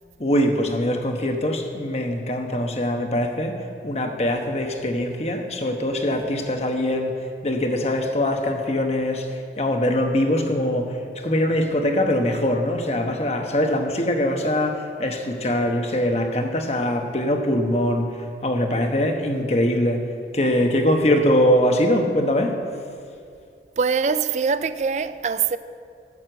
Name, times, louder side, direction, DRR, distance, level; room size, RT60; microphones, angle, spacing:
voice 1, 0.2-3.6 3.8-7.1 7.4-22.6, left 1 dB, 35° left, 1.1 m, -22 dB
voice 2, 23.8-25.6, right 5 dB, 40° right, 0.4 m, -23 dB
12.5 x 6.6 x 7.9 m
head